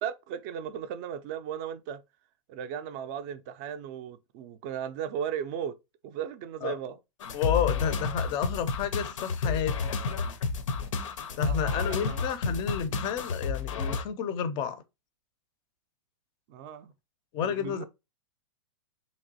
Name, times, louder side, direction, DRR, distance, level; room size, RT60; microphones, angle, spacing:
voice 1, 0.0-2.0 2.5-5.8 6.0-7.0 11.4-12.2 16.5-16.9 17.4-17.8, right 8 dB, 35° right, 0.3 m, -36 dB
sound 1, 7.2-14.0, left 5 dB, 85° left, 0.5 m, -30 dB
voice 2, 7.3-9.9 11.4-14.8 17.3-17.8, left 8 dB, 30° left, 0.4 m, -31 dB
3.1 x 2.9 x 2.6 m
hypercardioid pair, 145°, 16 cm